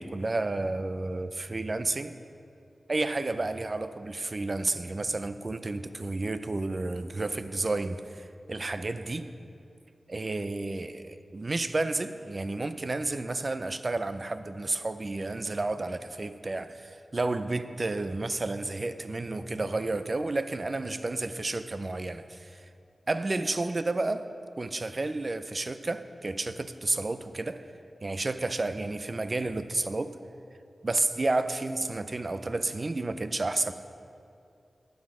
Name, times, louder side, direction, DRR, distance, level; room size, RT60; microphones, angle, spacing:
voice 1, 0.0-2.2 2.9-9.3 10.1-22.6 23.1-24.3 24.6-27.6 28.0-30.2 30.8-33.7, right 2 dB, 40° right, 0.5 m, -31 dB
12.0 x 9.5 x 4.8 m
wide cardioid pair, 85°, 0 cm